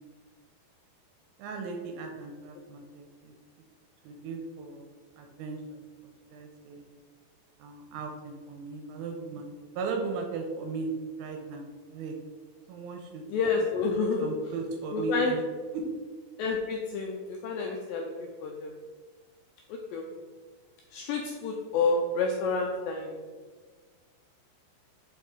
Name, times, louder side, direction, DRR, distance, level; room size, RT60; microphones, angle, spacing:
voice 1, 1.4-3.4 4.0-4.9 5.2-5.8 6.3-6.9 7.6-10.9 11.2-12.2 12.7-13.2 13.6-13.7 14.2-15.4 15.7-15.9, right 4 dB, 85° right, 3 dB, 2.4 m, -37 dB
voice 2, 13.3-14.3 14.9-15.3 16.4-18.1 18.4-18.7 19.9-20.0 20.9-23.2, left 4 dB, 90° left, 1 dB, 2.0 m, -29 dB
5.4 x 5.0 x 3.5 m, 1.5 s
omnidirectional pair, 4.6 m